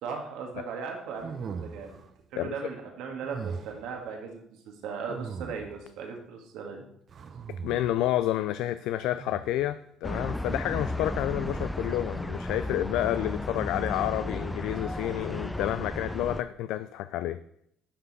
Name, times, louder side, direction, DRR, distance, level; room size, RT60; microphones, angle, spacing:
voice 1, 0.0-2.0 2.3-6.9, right 5 dB, 75° right, 2 dB, 1.7 m, -38 dB
sound 1, 1.2-2.1 3.2-3.9 5.1-5.9 7.1-8.1 9.2-9.7 11.3-12.0, right 6 dB, 50° right, 0.8 m, -40 dB
voice 2, 7.6-17.4, left 13 dB, 75° left, 11 dB, 0.4 m, -29 dB
sound 2, 10.0-16.4, left 1 dB, 10° left, 0.6 m, -34 dB
11.0 x 5.7 x 4.1 m, 0.73 s
hypercardioid pair, 65°, 0 cm